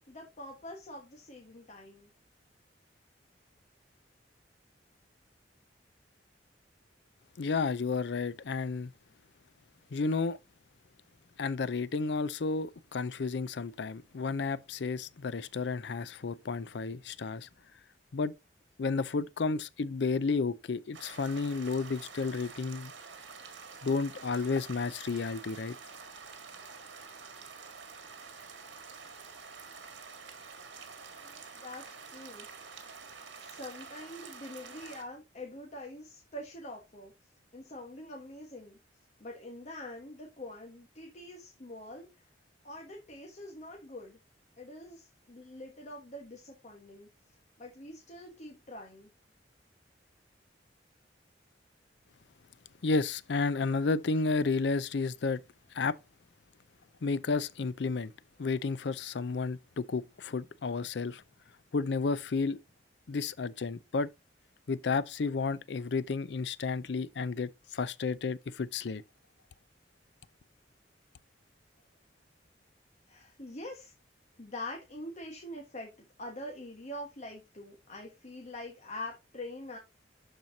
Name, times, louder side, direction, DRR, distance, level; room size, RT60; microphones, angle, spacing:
voice 1, 0.1-2.1 31.2-32.5 33.4-37.1 37.5-38.8 39.2-42.1 42.6-44.2 44.6-47.1 47.6-49.1 73.1-73.9 74.4-79.8, left 1 dB, 40° left, 1.4 m, -44 dB
voice 2, 7.4-8.9 9.9-10.4 11.4-17.5 18.1-18.3 18.8-22.9 23.8-25.8 52.8-55.4 55.7-56.0 57.0-58.1 58.4-61.2 61.7-62.6 63.1-64.1 64.7-69.0, left 4 dB, 65° left, 0.5 m, -32 dB
sound 1, 20.9-35.0, right 5 dB, 85° right, 1.7 m, -48 dB
12.0 x 4.4 x 2.7 m
head